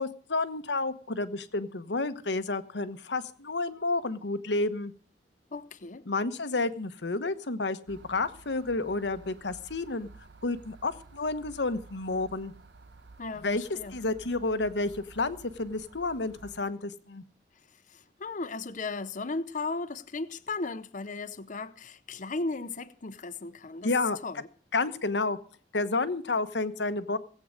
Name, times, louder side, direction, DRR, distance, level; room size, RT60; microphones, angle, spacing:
voice 1, 0.0-4.9 6.1-10.1 10.4-12.5 13.4-17.2 23.8-24.2 24.7-25.4 25.7-27.2, left 3 dB, 85° left, 1.1 m, -30 dB
voice 2, 5.5-6.1 13.2-13.9 17.9-23.9 24.2-24.5, left 3 dB, 45° left, 0.7 m, -36 dB
sound 1, 7.9-16.6, right 3 dB, 80° right, 1.3 m, -53 dB
17.5 x 8.6 x 6.5 m
head